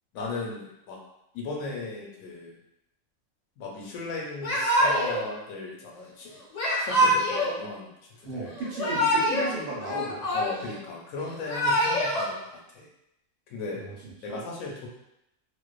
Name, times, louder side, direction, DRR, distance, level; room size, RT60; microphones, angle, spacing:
voice 1, 0.1-1.0 1.3-2.6 3.6-6.4 6.8-7.9 8.3-8.5 10.3-12.9 13.5-13.8 14.2-14.9, left 3 dB, 80° left, -2 dB, 1.0 m, -36 dB
Yell / Crying sobbing, 4.4-5.2 6.5-7.5 8.6-9.5 9.8-10.8 11.3-12.2, equal, 60° left, 0.4 m, -24 dB
voice 2, 8.2-10.3 13.7-14.4, right 2 dB, 90° right, -4 dB, 1.2 m, -35 dB
2.5 x 2.2 x 2.3 m, 0.86 s
omnidirectional pair, 1.4 m